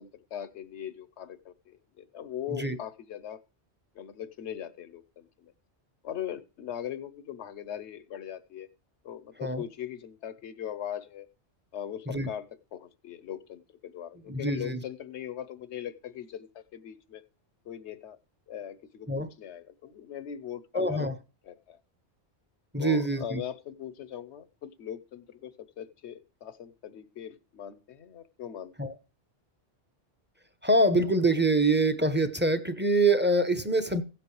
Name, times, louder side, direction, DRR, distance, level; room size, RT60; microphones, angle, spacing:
voice 1, 0.0-3.4 3.9-5.5 6.0-8.7 9.0-11.3 11.7-12.4 12.7-17.2 17.7-18.2 18.5-21.1 21.5-21.8 22.8-28.7, left 10 dB, 80° left, 1.1 m, -40 dB
voice 2, 14.3-14.8 19.1-19.3 20.7-21.1 22.7-23.4 28.8-28.9 30.6-34.0, right 2 dB, 10° right, 0.7 m, -25 dB
16.0 x 7.7 x 3.2 m
omnidirectional pair, 1.1 m